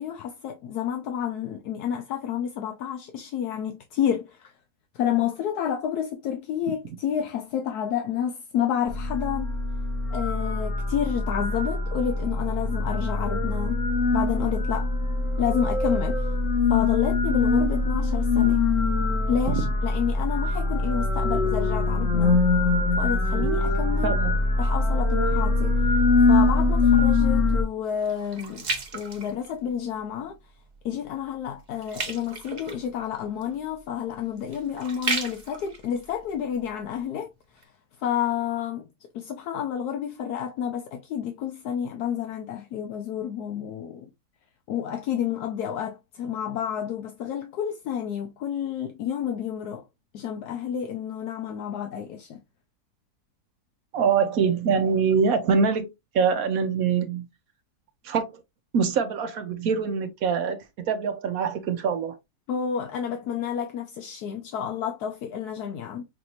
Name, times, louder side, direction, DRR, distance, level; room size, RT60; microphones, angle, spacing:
voice 1, 0.0-4.5 4.9-9.6 10.1-13.9 14.1-14.9 15.4-16.3 16.7-18.6 19.3-22.4 23.0-24.2 24.6-25.8 26.3-28.7 28.9-30.4 30.8-37.6 38.0-38.9 39.1-44.1 44.7-49.9 50.1-52.4 62.5-66.0, left 9 dB, 80° left, 1.2 m, -30 dB
sound 1, 8.9-27.6, left 3 dB, 50° left, 1.8 m, -23 dB
voice 2, 24.0-24.4 53.9-55.9 56.1-57.3 58.0-58.4 58.7-62.2, right 6 dB, 70° right, 1.1 m, -24 dB
sound 2, 26.7-30.0 30.5-30.8 31.1-37.1 37.6-37.7, right 3 dB, 35° right, 0.8 m, -35 dB
6.0 x 2.6 x 2.9 m
omnidirectional pair, 1.7 m